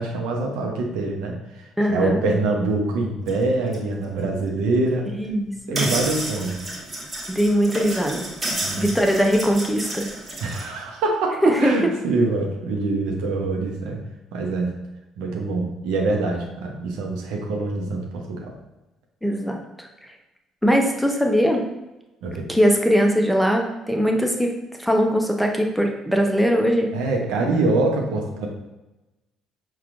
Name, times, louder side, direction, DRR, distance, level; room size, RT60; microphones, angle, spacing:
voice 1, 0.0-5.1 5.7-6.6 8.5-8.9 10.4-14.0 14.3-14.7 15.2-18.5 22.2-22.5 26.9-28.5, right 3 dB, 65° right, 0 dB, 0.6 m, -24 dB
voice 2, 1.8-2.2 5.1-5.8 7.3-8.3 8.8-10.1 11.4-11.7 19.2-20.1 20.6-21.6 22.5-24.5 24.8-26.9, equal, ahead, 1 dB, 0.6 m, -21 dB
sound 1, 3.3-3.4 3.7-3.8 4.9-5.0 5.8-10.7, right 1 dB, 25° right, 1.1 m, -30 dB
5.7 x 2.3 x 2.4 m, 1.0 s
figure-of-eight pair, 50°, 0 cm